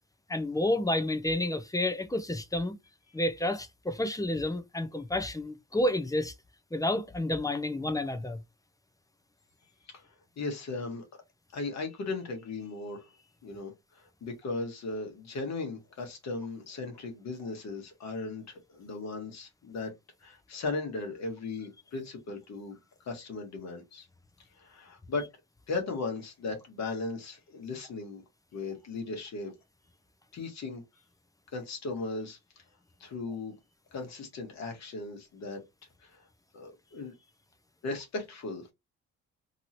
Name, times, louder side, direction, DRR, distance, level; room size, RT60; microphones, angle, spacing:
voice 1, 0.3-2.7 3.1-6.3 6.7-8.4, left 1 dB, 10° left, 0.7 m, -30 dB
voice 2, 9.9-11.0 11.5-13.1 13.4-19.9 20.2-22.8 23.0-24.1 24.6-25.3 25.7-28.2 28.5-29.5 30.3-30.8 31.5-32.6 33.0-33.5 33.9-35.6 36.0-36.2 36.5-37.1 37.8-38.7, left 3 dB, 55° left, 1.3 m, -37 dB
3.1 x 2.7 x 2.7 m
supercardioid pair, 60°, 33 cm